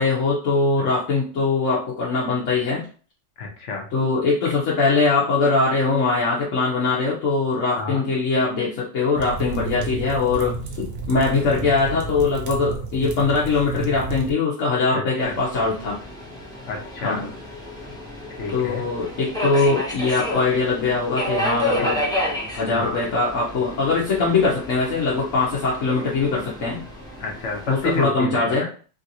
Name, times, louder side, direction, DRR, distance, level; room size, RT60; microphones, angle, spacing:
voice 1, 0.0-2.9 3.9-16.0 17.0-17.3 18.5-22.0 22.5-26.8 27.7-28.7, left 3 dB, 90° left, -6 dB, 1.2 m, -22 dB
voice 2, 3.4-3.9 7.7-8.0 14.9-15.3 16.7-17.2 18.4-18.8 21.8-21.9 22.7-23.0 27.2-28.7, left 2 dB, 70° left, 1 dB, 1.1 m, -29 dB
sound 1, 9.1-14.3, right 3 dB, 65° right, 0.8 m, -31 dB
Subway metro underground, 15.2-28.0, left 1 dB, 5° left, 0.6 m, -31 dB
3.1 x 2.5 x 2.8 m, 0.40 s
omnidirectional pair, 1.3 m